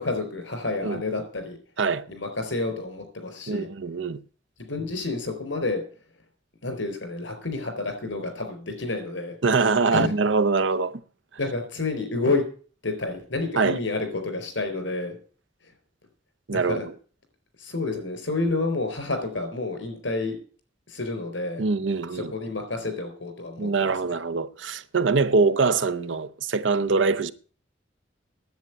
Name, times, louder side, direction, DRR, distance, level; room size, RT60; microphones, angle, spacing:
voice 1, 0.0-1.6 2.1-3.7 4.6-5.8 6.6-9.4 9.9-10.1 11.4-12.4 12.8-15.2 16.5-16.8 17.6-20.3 20.9-21.6 22.1-24.1, left 3 dB, 85° left, 4.2 m, -29 dB
voice 2, 3.5-4.2 9.4-11.0 13.6-13.8 16.5-16.9 21.6-22.3 23.6-27.3, right 4 dB, 85° right, 0.8 m, -23 dB
10.5 x 8.3 x 8.1 m
head